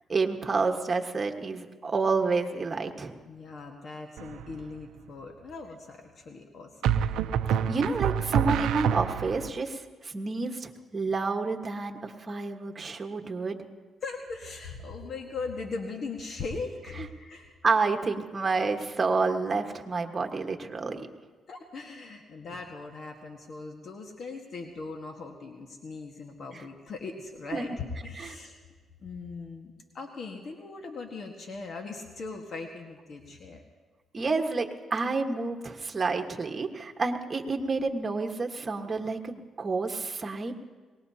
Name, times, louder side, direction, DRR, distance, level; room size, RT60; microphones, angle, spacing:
voice 1, 0.1-3.1 7.7-13.6 17.6-21.1 27.5-27.6 28.2-28.3 34.1-40.5, right 4 dB, 35° right, 3 dB, 1.4 m, -29 dB
voice 2, 3.3-7.0 14.0-17.5 21.5-28.6 29.0-33.6, left 4 dB, 55° left, 2 dB, 1.5 m, -39 dB
sound 1, 4.2-4.6 6.8-9.5, right 8 dB, 85° right, 0.5 m, -27 dB
23.0 x 19.5 x 2.9 m, 1.4 s
cardioid pair, 80°, 0 cm